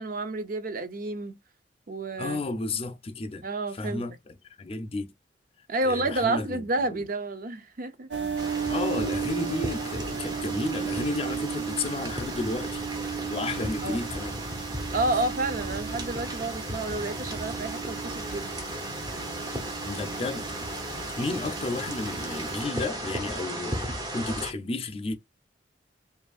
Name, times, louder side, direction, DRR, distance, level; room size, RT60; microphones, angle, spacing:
voice 1, 0.0-1.4 1.9-2.4 3.4-4.0 5.7-8.1 13.8-14.0 14.9-18.6, right 2 dB, 50° right, 0.5 m, -30 dB
voice 2, 2.2-3.4 3.7-5.1 5.8-7.0 8.7-12.8 13.3-14.4 19.8-20.5 21.2-25.1, left 3 dB, 35° left, 0.5 m, -32 dB
sound 1, 8.1-22.6, right 7 dB, 85° right, 0.8 m, -35 dB
sound 2, 8.4-24.5, right 1 dB, 25° right, 0.9 m, -36 dB
5.0 x 2.6 x 2.4 m
head